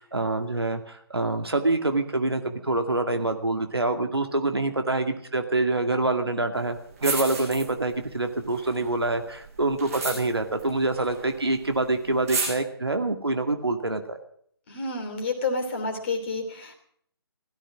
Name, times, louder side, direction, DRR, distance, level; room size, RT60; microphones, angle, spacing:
voice 1, 0.0-14.2, right 2 dB, 75° right, 6 dB, 2.2 m, -26 dB
sound 1, 6.7-6.8 7.0-8.0 8.4-11.5 11.7-11.8 12.1-12.5, right 4 dB, 35° right, 6.0 m, -32 dB
voice 2, 14.7-16.7, left 3 dB, 30° left, 4 dB, 3.0 m, -29 dB
17.0 x 13.0 x 6.1 m, 0.64 s
figure-of-eight pair, 145°, 13 cm